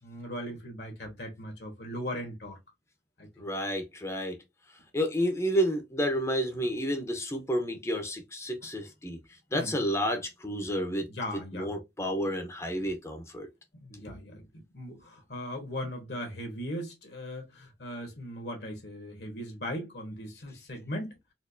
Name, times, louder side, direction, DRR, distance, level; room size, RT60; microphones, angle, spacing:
voice 1, 0.0-2.6 3.2-3.3 6.6-6.7 9.5-9.7 11.1-11.7 13.8-14.5 14.7-21.2, equal, 65° left, 1.3 m, -38 dB
voice 2, 3.4-4.4 4.9-9.2 9.5-11.1 11.5-13.5, equal, 15° left, 0.7 m, -30 dB
4.3 x 2.5 x 2.6 m
head